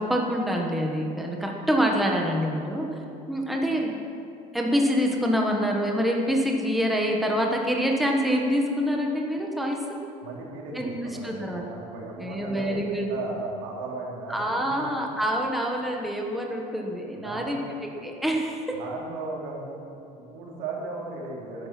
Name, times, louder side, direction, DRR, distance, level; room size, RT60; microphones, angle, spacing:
voice 1, 0.0-2.9 3.3-3.9 4.5-10.0 10.7-10.9 11.2-11.7 12.2-13.1 14.3-18.8, equal, ahead, 0 dB, 1.1 m, -26 dB
voice 2, 10.2-15.2 17.1-17.7 18.7-19.8 20.1-21.7, right 3 dB, 85° right, -2 dB, 3.0 m, -36 dB
12.5 x 10.5 x 5.9 m, 2.8 s
cardioid pair, 150°, 15 cm